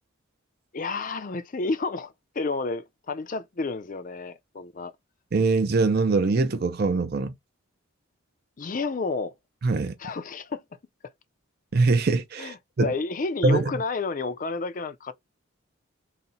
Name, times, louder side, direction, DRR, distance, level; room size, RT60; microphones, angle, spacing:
voice 1, 0.7-4.9 8.6-9.3 10.0-10.6 12.4-15.1, left 3 dB, 40° left, 0.5 m, -30 dB
voice 2, 5.3-7.3 9.6-9.9 11.7-12.9 13.4-13.7, right 3 dB, 45° right, 0.5 m, -23 dB
4.0 x 2.1 x 3.9 m
head